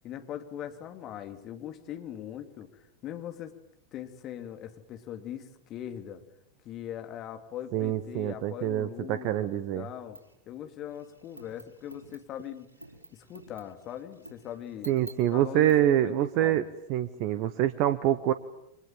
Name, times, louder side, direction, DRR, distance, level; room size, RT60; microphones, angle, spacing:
voice 1, 0.0-3.5 3.9-6.2 6.6-10.2 10.5-12.7 13.1-16.6, left 10 dB, 35° left, 7 dB, 2.9 m, -41 dB
voice 2, 7.7-9.9 14.9-16.6 16.9-18.3, right 12 dB, 45° right, 14 dB, 1.2 m, -26 dB
sound 1, 10.1-10.3 10.9-15.7, right 1 dB, 80° right, 4.7 m, -50 dB
29.0 x 24.5 x 7.6 m, 0.80 s
figure-of-eight pair, 90°, 0 cm